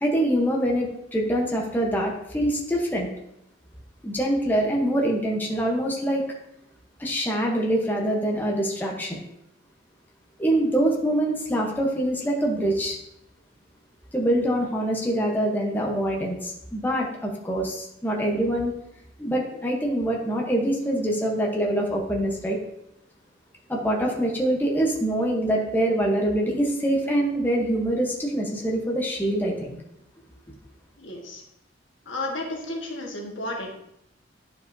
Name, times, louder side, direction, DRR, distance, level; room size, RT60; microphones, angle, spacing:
voice 1, 0.0-3.1 4.0-6.3 7.0-9.2 10.4-13.0 14.1-18.7 19.2-22.6 23.7-29.8, right 1 dB, 10° left, -2 dB, 1.0 m, -24 dB
voice 2, 31.0-31.4 32.0-33.7, left 1 dB, 80° left, 0 dB, 1.6 m, -32 dB
10.5 x 4.9 x 2.7 m, 0.78 s
head